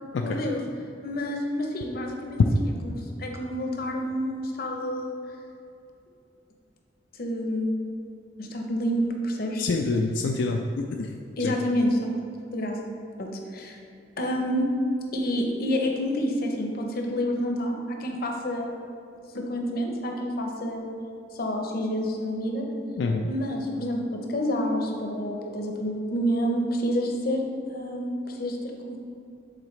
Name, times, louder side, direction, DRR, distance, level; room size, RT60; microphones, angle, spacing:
voice 1, 0.2-0.6 1.0-5.2 7.2-7.8 8.4-9.7 11.4-12.0 12.5-13.8 14.2-14.7 15.1-18.7 19.3-20.9 21.3-22.6 23.3-24.0 24.3-27.4 27.7-28.6 28.9-29.0, equal, 55° left, 2 dB, 0.7 m, -28 dB
voice 2, 9.6-11.1 11.4-11.5 23.0-23.2, left 3 dB, 85° left, 2 dB, 0.3 m, -26 dB
7.6 x 3.9 x 3.2 m, 2.5 s
head